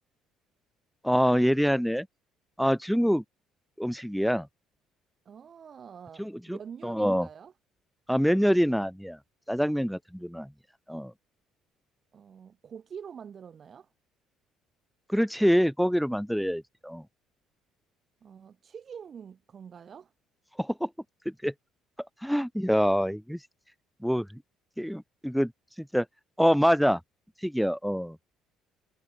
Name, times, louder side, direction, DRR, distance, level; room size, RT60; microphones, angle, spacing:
voice 1, 1.0-2.1 2.6-3.2 3.8-4.5 6.2-6.6 6.8-7.3 8.1-9.2 9.5-10.5 10.9-11.1 15.1-17.0 20.6-20.9 21.4-21.5 22.2-23.4 24.0-24.3 24.8-25.5 25.9-26.1 26.4-27.0 27.4-28.2, equal, ahead, 1.8 m, -25 dB
voice 2, 5.3-7.5 12.1-13.9 18.2-20.1, right 7 dB, 45° right, 4.3 m, -45 dB
supercardioid pair, 90°, 0 cm